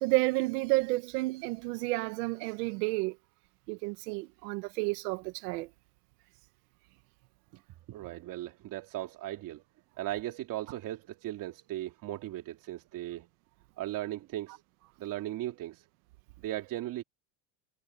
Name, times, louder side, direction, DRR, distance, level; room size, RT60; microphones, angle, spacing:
voice 1, 0.0-3.2 3.7-5.7, right 22 dB, 70° right, 1.5 m, -31 dB
voice 2, 7.9-9.6 10.0-13.3 13.8-14.6 15.0-15.8 16.4-17.0, right 14 dB, 40° right, 2.9 m, -37 dB
supercardioid pair, 160°, 49 cm